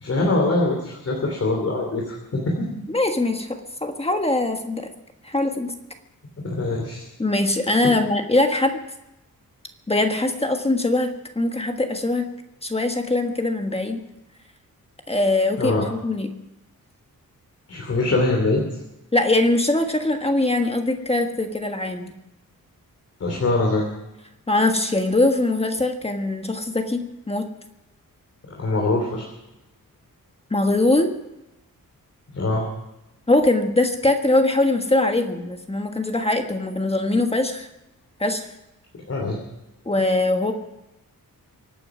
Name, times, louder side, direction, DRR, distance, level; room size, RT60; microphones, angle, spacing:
voice 1, 0.0-2.7 6.4-7.0 7.8-8.0 15.6-15.9 17.7-18.6 23.2-23.8 28.5-29.3 32.3-32.6 39.1-39.4, left 2 dB, 45° left, 1 dB, 3.0 m, -23 dB
voice 2, 2.9-3.5 3.8-4.9 5.2-5.7 7.2-8.7 9.9-12.3 12.6-14.0 15.1-16.3 19.1-22.1 24.5-27.5 30.5-31.1 33.3-37.7 38.2-38.5 39.8-40.5, left 2 dB, 15° left, 4 dB, 1.4 m, -22 dB
24.5 x 9.1 x 6.0 m, 0.94 s
wide cardioid pair, 145°, 35 cm